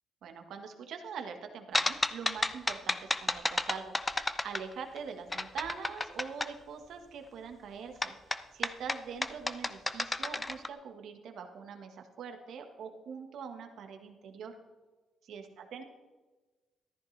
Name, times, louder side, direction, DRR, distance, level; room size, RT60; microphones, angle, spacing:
voice 1, 0.2-8.1 8.5-14.6 15.2-15.8, right 6 dB, 75° right, 5 dB, 1.4 m, -43 dB
sound 1, 1.7-5.0 5.3-6.5 8.0-10.7, left 2 dB, 20° left, 0.6 m, -32 dB
14.0 x 11.0 x 3.3 m, 1.2 s
cardioid pair, 90°, 0 cm